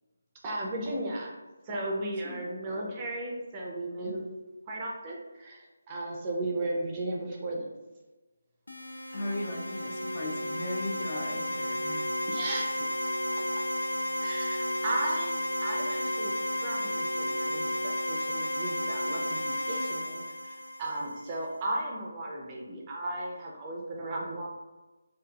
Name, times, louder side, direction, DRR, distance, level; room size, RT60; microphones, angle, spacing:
voice 1, 0.4-1.3 1.6-4.2 4.7-7.7 12.3-13.1 14.2-24.5, right 1 dB, 20° right, -2 dB, 0.5 m, -35 dB
sound 1, 8.7-21.4, left 1 dB, 85° left, 0.5 m, -33 dB
voice 2, 9.1-12.2 13.4-13.6, left 1 dB, 35° left, 0 dB, 0.5 m, -37 dB
Organ, 9.1-20.1, equal, 80° right, 0.4 m, -41 dB
3.8 x 2.4 x 2.3 m, 1.2 s
figure-of-eight pair, 160°, 0 cm